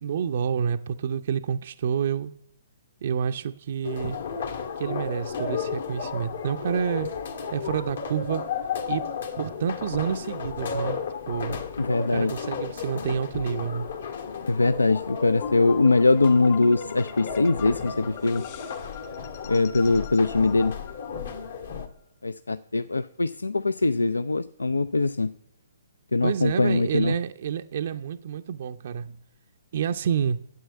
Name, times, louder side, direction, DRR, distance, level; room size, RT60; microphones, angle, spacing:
voice 1, 0.0-2.3 3.0-4.2 4.8-7.1 7.5-8.4 8.9-9.1 9.4-11.0 11.3-11.6 12.1-13.9 26.2-29.2 29.7-30.4, right 8 dB, 55° right, 7 dB, 0.5 m, -28 dB
sound 1, 3.8-21.9, left 6 dB, 65° left, 1.8 m, -34 dB
voice 2, 11.8-12.3 14.4-18.4 19.4-20.7 22.2-25.3 26.1-27.1, left 3 dB, 85° left, 15 dB, 0.4 m, -22 dB
sound 2, 15.4-21.5, left 9 dB, 40° left, 1.8 m, -44 dB
9.3 x 8.1 x 8.3 m, 0.76 s
figure-of-eight pair, 130°, 0 cm